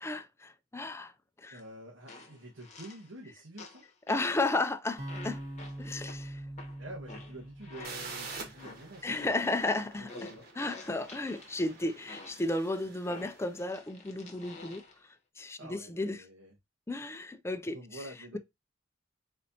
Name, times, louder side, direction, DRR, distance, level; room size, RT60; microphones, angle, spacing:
voice 1, 0.0-1.1 1.4-1.6 4.1-5.4 5.8-6.4 9.0-10.1 10.6-14.8 15.4-16.2 16.9-17.8, left 2 dB, 15° left, 0.4 m, -33 dB
sound 1, 1.5-1.6 2.1-3.1 3.6-4.4 5.1-8.2 8.6-11.5 12.1-12.5 13.1-15.0, left 3 dB, 35° left, 1.0 m, -49 dB
voice 2, 1.5-3.9 6.8-10.4 15.6-16.6 17.7-18.4, right 1 dB, 80° right, 1.3 m, -48 dB
sound 2, 5.0-9.1, right 1 dB, 35° right, 1.4 m, -43 dB
sound 3, 7.8-13.5, right 4 dB, 50° right, 1.4 m, -47 dB
4.3 x 4.2 x 2.7 m
head